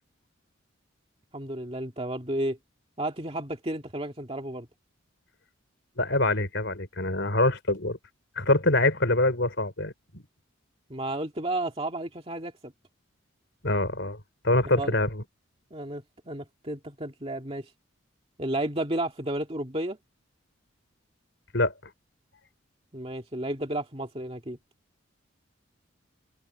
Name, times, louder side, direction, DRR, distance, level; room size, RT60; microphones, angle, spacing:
voice 1, 1.3-2.6 3.0-4.7 10.9-12.7 14.8-14.9 15.7-17.7 18.4-20.0 22.9-24.6, right 1 dB, 30° right, 2.3 m, -32 dB
voice 2, 6.0-8.0 8.4-10.2 13.6-14.2 14.4-15.2 21.5-21.7, left 2 dB, 60° left, 4.4 m, -25 dB
open air
head